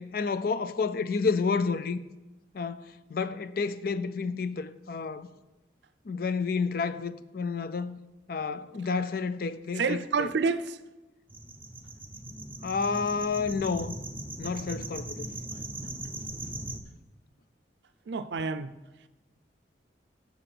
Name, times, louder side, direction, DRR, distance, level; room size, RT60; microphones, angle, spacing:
voice 1, 0.0-2.0 2.5-5.3 6.1-8.0 8.3-10.3 12.6-14.0 14.4-15.3, left 4 dB, 55° left, 0.4 m, -30 dB
voice 2, 9.7-10.8 15.5-15.7 18.1-18.8, right 4 dB, 75° right, 0.5 m, -29 dB
sound 1, 11.3-16.8, right 2 dB, 10° right, 0.6 m, -39 dB
7.2 x 6.9 x 5.8 m
head